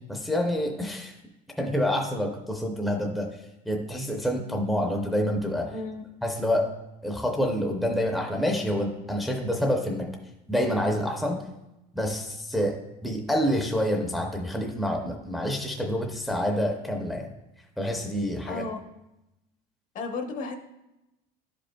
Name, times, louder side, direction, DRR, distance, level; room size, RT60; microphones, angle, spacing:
voice 1, 0.1-1.1 1.6-3.3 3.7-5.7 6.2-6.7 7.0-10.2 10.5-11.4 11.9-17.3 17.8-18.6, equal, ahead, 2 dB, 0.5 m, -27 dB
voice 2, 5.7-6.0 18.5-18.8 19.9-20.5, left 3 dB, 45° left, 5 dB, 0.7 m, -33 dB
11.0 x 5.1 x 2.2 m, 0.93 s
cardioid pair, 150°, 18 cm